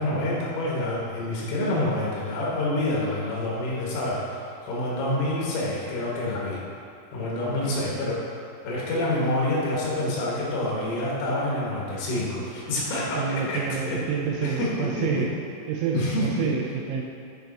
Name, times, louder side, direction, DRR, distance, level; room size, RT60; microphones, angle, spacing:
voice 1, 0.0-6.6 7.1-8.2 8.6-13.2 13.5-13.6 13.9-14.0 14.4-15.2 15.9-16.5, left 1 dB, 75° left, -6 dB, 3.9 m, -27 dB
voice 2, 1.6-1.9 7.4-8.0 13.1-15.3 15.7-17.0, right 7 dB, 85° right, -1 dB, 2.6 m, -29 dB
10.5 x 3.4 x 5.2 m, 2.6 s
omnidirectional pair, 6.0 m